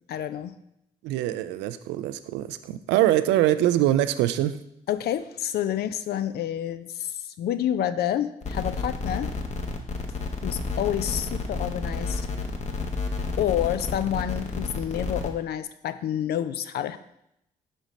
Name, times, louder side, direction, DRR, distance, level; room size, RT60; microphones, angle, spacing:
voice 1, 0.1-0.5 4.9-9.3 10.4-12.3 13.4-17.0, left 10 dB, 55° left, 12 dB, 0.4 m, -28 dB
voice 2, 1.0-4.6, right 13 dB, 70° right, 12 dB, 0.4 m, -23 dB
sound 1, 8.4-15.3, left 3 dB, 35° left, 1.0 m, -31 dB
5.2 x 5.0 x 4.1 m, 0.80 s
hypercardioid pair, 40°, 19 cm